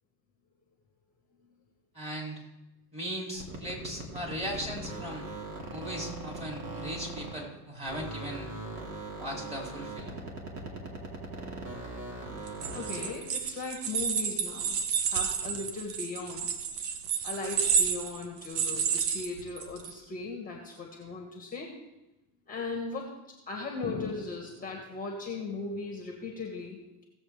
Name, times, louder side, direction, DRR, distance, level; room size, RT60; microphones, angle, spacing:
voice 1, 1.9-2.5 2.9-5.3 5.7-8.5 9.2-10.2, equal, 15° right, -1 dB, 3.2 m, -38 dB
sound 1, 3.3-7.6 7.8-13.3, right 2 dB, 35° right, 2.5 m, -40 dB
sound 2, 12.5-19.9, right 6 dB, 80° right, 1.2 m, -30 dB
voice 2, 12.7-14.8 15.0-16.5 17.2-21.8 22.5-23.1 23.5-27.0, left 3 dB, 15° left, 0 dB, 1.7 m, -38 dB
17.5 x 7.5 x 3.4 m, 0.98 s
supercardioid pair, 115°, 47 cm